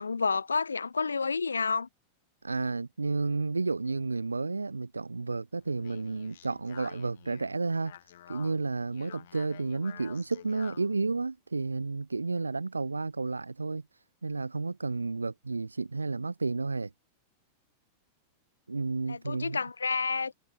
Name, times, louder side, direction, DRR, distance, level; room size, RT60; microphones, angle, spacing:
voice 1, 0.0-1.9 19.1-20.3, left 4 dB, 75° left, 1.2 m, -29 dB
voice 2, 2.4-7.9 8.3-13.8 14.2-16.9 18.7-19.6, right 3 dB, 80° right, 1.5 m, -31 dB
Speech, 5.5-11.0, left 12 dB, 60° left, 7.0 m, -50 dB
figure-of-eight pair, 90°, 0 cm